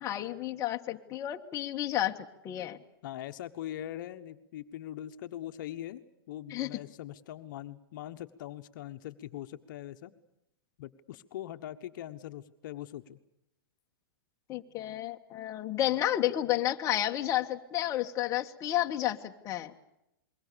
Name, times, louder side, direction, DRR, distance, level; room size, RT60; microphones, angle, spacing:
voice 1, 0.0-2.2 2.4-2.8 6.5-6.8 14.5-19.7, left 13 dB, 25° left, 3 dB, 1.5 m, -31 dB
voice 2, 3.0-6.0 6.3-10.1 10.8-13.2, left 12 dB, 55° left, 9 dB, 1.3 m, -42 dB
27.5 x 22.5 x 7.0 m, 0.85 s
hypercardioid pair, 145°, 13 cm